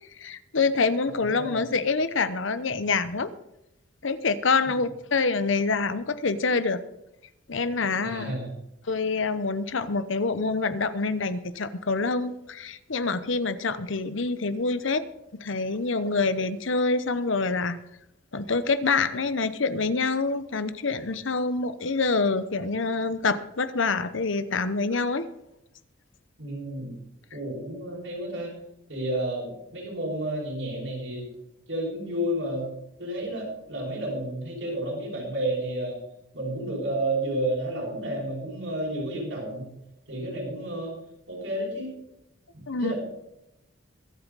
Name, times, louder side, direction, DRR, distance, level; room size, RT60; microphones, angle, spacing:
voice 1, 0.2-3.3 4.0-6.8 7.5-8.3 8.9-15.0 15.4-17.8 18.3-25.2 42.7-42.9, left 4 dB, 70° left, 13 dB, 0.9 m, -26 dB
voice 2, 1.1-1.6 8.0-8.5 26.4-26.9 27.3-28.5 28.9-31.3 31.7-32.7 33.0-36.0 36.3-39.7 40.1-40.9 41.3-41.9 42.5-42.9, right 1 dB, 70° right, -5 dB, 5.8 m, -31 dB
23.5 x 8.1 x 4.1 m, 0.86 s
head